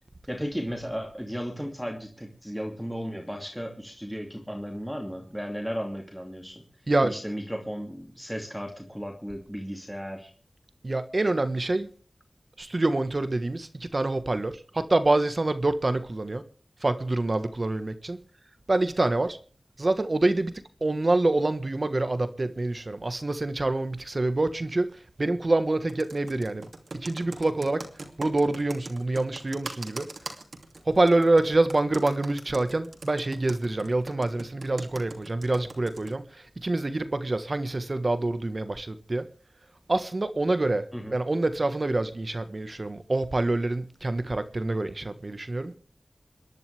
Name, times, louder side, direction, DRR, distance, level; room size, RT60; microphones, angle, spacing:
voice 1, 0.3-6.6 7.0-10.3 40.9-41.1, equal, ahead, 2.6 m, -35 dB
voice 2, 10.8-11.9 12.6-16.4 16.8-18.2 18.7-19.4 19.8-20.5 20.8-24.9 25.2-26.7 26.9-27.8 28.2-30.1 30.9-36.2 36.6-39.3 39.9-40.8 41.1-45.7, right 2 dB, 50° right, 1.4 m, -26 dB
Computer keyboard, 25.9-36.1, right 2 dB, 70° right, 2.8 m, -41 dB
28.0 x 11.0 x 3.4 m
wide cardioid pair, 55°, 0 cm